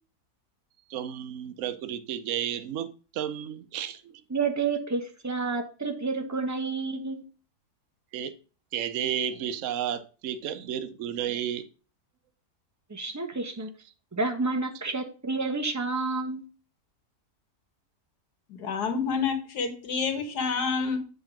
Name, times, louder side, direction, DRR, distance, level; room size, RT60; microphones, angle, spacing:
voice 1, 0.9-4.1 8.1-8.3 8.7-11.6, right 9 dB, 60° right, 9 dB, 1.0 m, -32 dB
voice 2, 4.3-7.2 12.9-13.7 14.1-16.4, right 4 dB, 15° right, 5 dB, 0.7 m, -30 dB
voice 3, 18.5-21.0, left 5 dB, 75° left, 7 dB, 1.7 m, -28 dB
7.9 x 3.7 x 5.9 m, 0.36 s
omnidirectional pair, 1.7 m